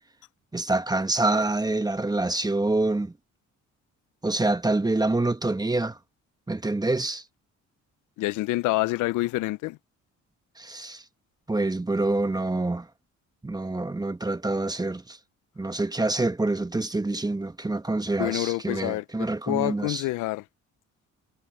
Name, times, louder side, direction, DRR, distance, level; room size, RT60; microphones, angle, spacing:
voice 1, 0.5-3.1 4.2-6.0 6.5-7.2 10.6-11.0 11.5-12.9 13.4-15.2 15.6-20.0, right 2 dB, 15° right, 1.2 m, -26 dB
voice 2, 8.2-9.8 18.2-20.4, left 19 dB, 85° left, 0.5 m, -27 dB
cardioid pair, 90°, 30 cm